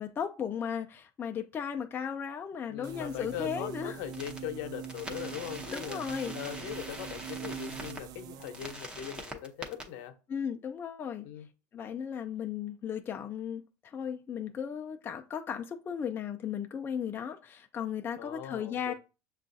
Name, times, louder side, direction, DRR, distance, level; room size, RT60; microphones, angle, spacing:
voice 1, 0.0-4.0 5.7-6.4 10.3-11.3 11.7-18.9, left 8 dB, 25° left, 0.4 m, -36 dB
voice 2, 2.7-6.0 6.3-10.1 11.2-11.5 18.2-18.9, left 10 dB, 70° left, 0.8 m, -40 dB
sound 1, 2.8-8.7, right 9 dB, 50° right, 0.4 m, -43 dB
sound 2, 4.1-4.4 4.8-8.0 8.4-9.8, right 1 dB, 10° right, 0.7 m, -43 dB
6.5 x 2.4 x 2.6 m
supercardioid pair, 120°, 9 cm